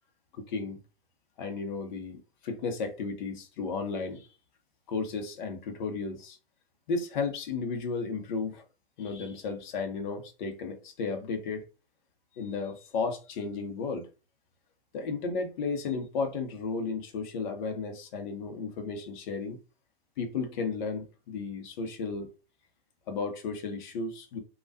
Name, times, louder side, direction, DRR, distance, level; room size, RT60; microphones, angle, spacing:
voice 1, 0.3-0.8 1.4-4.3 4.9-6.4 6.9-8.6 9.0-11.6 12.4-14.1 14.9-19.6 20.2-22.3 23.1-24.4, left 4 dB, 50° left, 0.8 m, -34 dB
3.3 x 2.3 x 2.7 m
hypercardioid pair, 115°, 31 cm